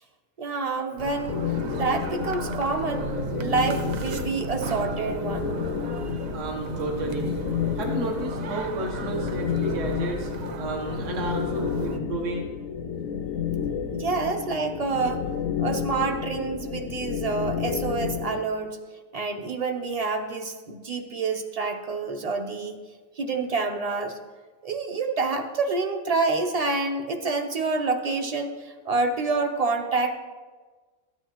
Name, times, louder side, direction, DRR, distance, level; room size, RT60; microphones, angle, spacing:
voice 1, 0.4-1.4 1.7-3.1 3.4-5.5 13.9-15.2 15.6-18.8 19.1-22.8 23.2-24.2 24.6-30.2, right 3 dB, 35° right, 5 dB, 0.7 m, -27 dB
sound 1, 1.0-12.0, right 5 dB, 90° right, 0.3 m, -35 dB
sound 2, 1.3-18.4, left 7 dB, 85° left, 1.0 m, -31 dB
voice 2, 5.9-7.3 7.7-10.3 10.6-12.5, right 2 dB, 70° right, 0 dB, 1.5 m, -32 dB
13.5 x 9.2 x 3.0 m, 1.4 s
omnidirectional pair, 1.4 m